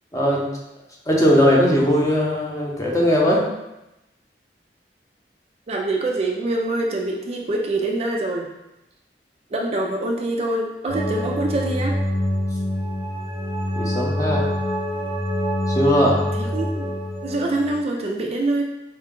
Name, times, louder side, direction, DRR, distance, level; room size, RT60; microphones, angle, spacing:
voice 1, 0.1-0.5 1.1-3.4 13.7-14.5 15.7-16.2, equal, 20° left, -4 dB, 0.7 m, -19 dB
voice 2, 5.7-8.5 9.5-12.0 16.3-18.6, right 2 dB, 35° right, 0 dB, 0.3 m, -25 dB
sound 1, 10.9-17.8, left 1 dB, 10° right, 0.9 m, -25 dB
4.4 x 2.2 x 3.6 m, 0.93 s
head